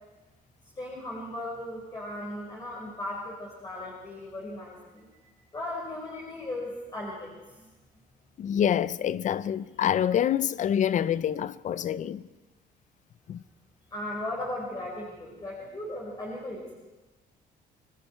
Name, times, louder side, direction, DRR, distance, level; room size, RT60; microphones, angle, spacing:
voice 1, 0.7-5.1 5.5-7.7 13.9-16.7, left 1 dB, 25° left, 4.9 m, -37 dB
voice 2, 8.4-12.2 13.3-13.4, left 9 dB, 45° left, 0.6 m, -26 dB
30.0 x 19.5 x 4.5 m
cardioid pair, 110°, 17 cm